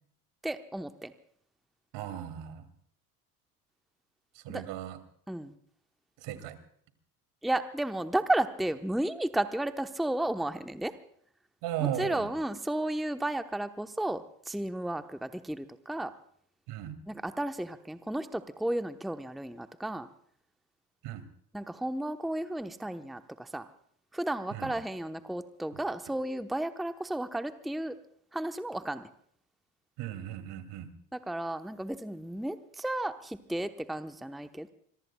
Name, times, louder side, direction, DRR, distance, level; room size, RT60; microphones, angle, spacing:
voice 1, 0.4-1.1 4.5-4.6 5.3-5.5 7.4-10.9 11.8-16.1 17.1-20.1 21.5-23.7 24.1-28.0 28.3-29.1 31.1-34.7, right 1 dB, ahead, 9 dB, 1.0 m, -33 dB
voice 2, 1.9-2.7 4.3-5.0 6.2-6.6 11.6-12.3 16.7-17.0 21.0-21.2 24.5-24.7 25.7-25.8 30.0-30.9, right 11 dB, 60° right, 11 dB, 2.7 m, -36 dB
25.5 x 22.5 x 2.3 m, 0.64 s
hypercardioid pair, 80°, 47 cm